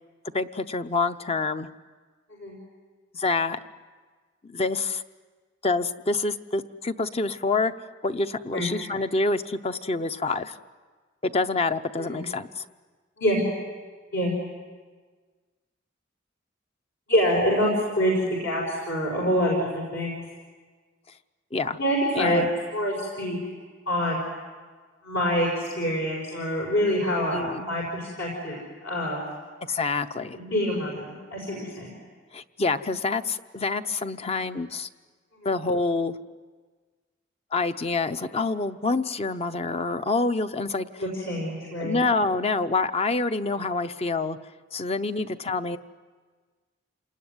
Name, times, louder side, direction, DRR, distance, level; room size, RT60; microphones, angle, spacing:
voice 1, 0.3-1.7 3.1-3.6 4.4-5.0 5.6-7.7 8.0-10.6 11.2-12.6 21.5-21.8 22.1-22.5 27.3-27.6 29.7-30.4 32.3-34.9 35.4-36.2 37.5-40.9 41.8-44.4 44.7-45.8, left 3 dB, 35° left, 10 dB, 0.8 m, -27 dB
voice 2, 17.1-20.2 21.8-23.4 23.9-24.2 25.0-29.2 30.3-32.0 35.4-35.5 41.0-42.0 45.1-45.2, equal, 70° left, -3 dB, 5.8 m, -26 dB
28.0 x 19.5 x 9.7 m, 1.5 s
head